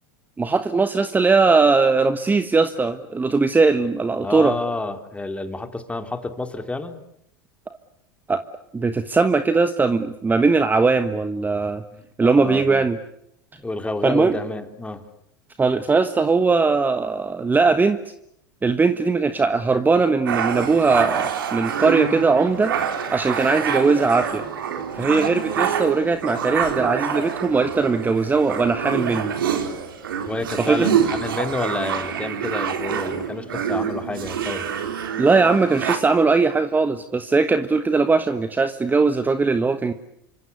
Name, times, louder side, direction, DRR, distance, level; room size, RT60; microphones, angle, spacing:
voice 1, 0.4-4.5 8.3-8.4 8.7-11.8 12.2-13.0 14.0-14.4 15.6-18.0 18.6-22.7 23.1-24.4 25.0-29.3 30.6-30.9 35.2-39.9, right 4 dB, 15° right, 10 dB, 1.3 m, -19 dB
voice 2, 4.2-7.0 11.9-12.8 13.5-15.0 30.3-34.7, left 2 dB, 10° left, 8 dB, 3.2 m, -29 dB
sound 1, 20.3-36.0, right 8 dB, 85° right, 3.5 m, -26 dB
27.0 x 25.5 x 8.3 m, 0.74 s
hypercardioid pair, 100°, 11 cm